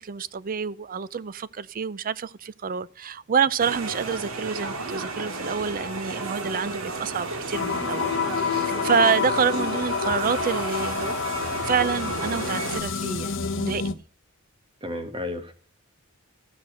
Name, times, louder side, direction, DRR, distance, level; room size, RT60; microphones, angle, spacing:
voice 1, 0.0-11.2 11.5-14.0, right 6 dB, 40° right, 0.5 m, -27 dB
sound 1, 3.6-12.8, right 3 dB, 70° right, 1.9 m, -33 dB
sound 2, 7.5-13.9, left 6 dB, 60° left, 0.9 m, -28 dB
voice 2, 14.8-15.5, left 1 dB, 25° right, 1.7 m, -33 dB
14.5 x 5.9 x 6.3 m
head